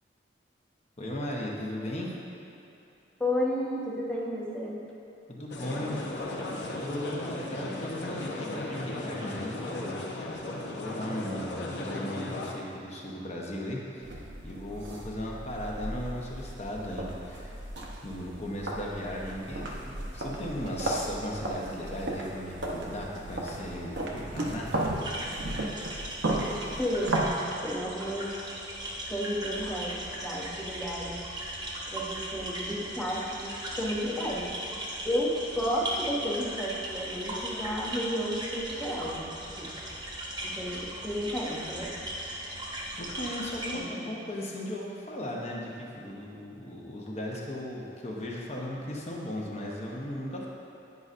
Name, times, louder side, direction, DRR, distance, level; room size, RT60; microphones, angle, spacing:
voice 1, 1.0-2.1 5.3-6.3 6.7-10.1 10.7-17.6 18.0-24.8 25.0-25.2 43.0-50.5, left 1 dB, 40° left, -3 dB, 0.8 m, -37 dB
voice 2, 3.2-4.8 26.8-28.3 29.1-31.2 31.9-34.5 35.0-39.7 40.4-41.9 43.7-44.3, equal, 5° left, -4 dB, 0.8 m, -32 dB
sound 1, 5.5-12.5, left 2 dB, 70° left, 0.7 m, -36 dB
sound 2, 14.0-27.3, right 1 dB, 85° right, 0.8 m, -35 dB
sound 3, 24.9-43.8, right 1 dB, 25° right, 0.9 m, -38 dB
9.4 x 5.3 x 2.5 m, 2.8 s
head